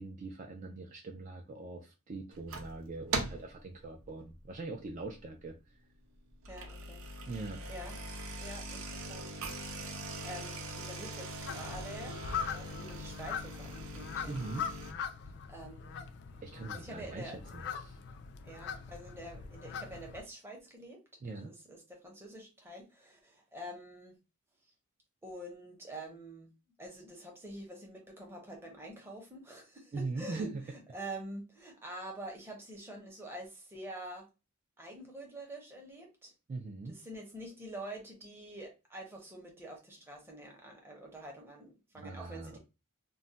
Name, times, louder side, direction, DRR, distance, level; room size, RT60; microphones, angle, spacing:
voice 1, 0.0-5.8 7.3-7.6 14.2-14.7 16.4-17.4 17.8-18.0 21.2-21.5 29.9-30.6 36.5-37.0 41.9-42.6, right 3 dB, 40° right, 0.3 m, -41 dB
sound 1, 2.3-2.8 3.1-3.6 4.0-4.3 4.9-5.0 5.2-5.3 6.3-14.9, right 2 dB, 85° right, 0.6 m, -41 dB
voice 2, 6.5-7.0 7.7-8.0 8.4-9.4 10.2-12.2 12.5-14.4 15.5-16.1 16.7-17.4 18.4-24.2 25.2-26.5 26.8-34.3 34.8-36.3 36.9-42.6, right 1 dB, 10° right, 0.7 m, -46 dB
sound 2, 11.5-20.2, left 7 dB, 50° left, 0.3 m, -42 dB
2.3 x 2.1 x 3.8 m
head